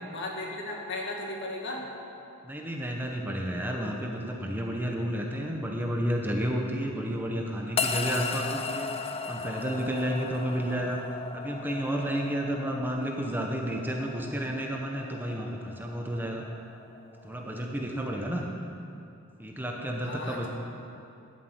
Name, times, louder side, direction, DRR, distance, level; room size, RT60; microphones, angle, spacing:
voice 1, 0.1-1.9 20.0-20.5, left 2 dB, 55° left, -1 dB, 2.1 m, -36 dB
voice 2, 2.4-8.9 9.3-11.0 11.3-16.4 17.2-18.5 19.4-20.5, equal, 10° right, 0 dB, 0.9 m, -31 dB
sound 1, 7.8-18.1, left 5 dB, 25° left, 0.5 m, -37 dB
13.0 x 7.5 x 8.0 m, 2.7 s
head